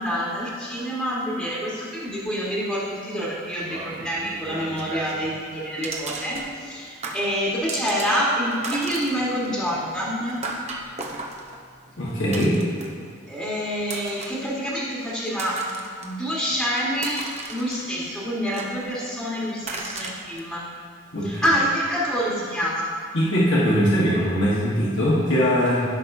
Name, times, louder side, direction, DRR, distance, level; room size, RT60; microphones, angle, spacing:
voice 1, 0.0-10.4 13.3-15.8 16.0-20.7 21.2-22.9, equal, ahead, -7 dB, 1.5 m, -27 dB
sound 1, 3.6-5.3 5.8-6.8 7.0-8.2 8.5-13.1 13.8-14.5 15.0-16.1 16.5-18.1 18.5-19.2 19.6-20.4, right 3 dB, 35° right, 0.8 m, -36 dB
voice 2, 12.0-12.6 21.1-21.4 23.1-25.8, equal, 60° left, -7 dB, 1.3 m, -21 dB
14.0 x 5.9 x 2.7 m, 2.3 s
head